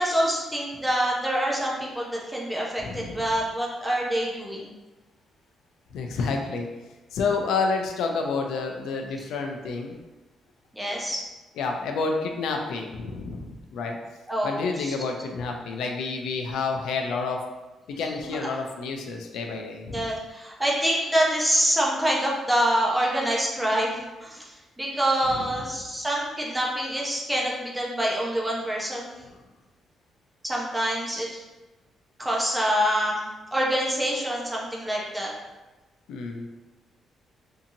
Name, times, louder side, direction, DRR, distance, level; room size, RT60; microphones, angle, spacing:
voice 1, 0.0-4.7 10.7-11.2 14.3-14.9 18.2-18.4 19.9-29.1 30.4-31.4 32.2-35.3, equal, 5° right, -3 dB, 0.4 m, -26 dB
voice 2, 2.8-3.3 5.9-6.7 7.1-10.0 11.6-14.0 14.4-17.4 17.9-20.1 25.3-25.5 36.1-36.5, left 4 dB, 85° left, 2 dB, 0.4 m, -29 dB
2.7 x 2.6 x 2.6 m, 1.1 s
cardioid pair, 175°, 0 cm